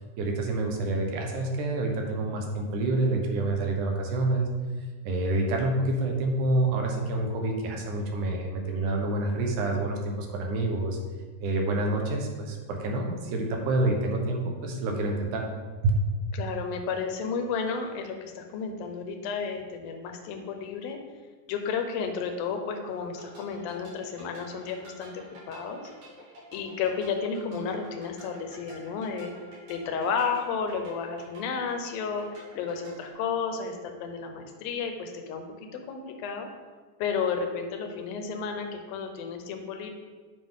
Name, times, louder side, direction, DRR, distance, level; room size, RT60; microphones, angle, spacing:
voice 1, 0.2-4.5 5.0-11.0 11.4-15.4, right 2 dB, 70° right, 2 dB, 2.4 m, -28 dB
voice 2, 16.3-21.0 21.5-25.8 26.5-29.3 29.7-36.5 37.0-39.9, left 5 dB, 85° left, 5 dB, 2.6 m, -32 dB
sound 1, 23.1-33.1, equal, 55° right, 3.8 m, -49 dB
9.6 x 5.9 x 3.7 m, 1.5 s
omnidirectional pair, 4.1 m